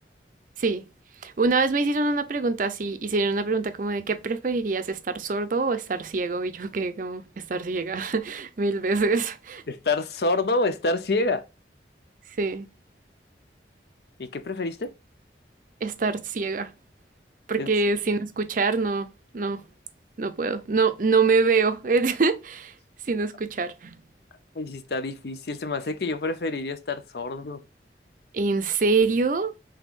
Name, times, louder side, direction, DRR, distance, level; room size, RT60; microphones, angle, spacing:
voice 1, 1.2-9.6 12.4-12.7 15.8-16.7 17.5-19.6 20.2-22.8 23.0-24.0 28.3-29.5, right 4 dB, 50° right, 0.5 m, -25 dB
voice 2, 9.7-11.4 14.2-14.9 17.6-17.7 24.5-27.6, left 2 dB, 65° left, 0.6 m, -27 dB
5.4 x 3.5 x 2.4 m
head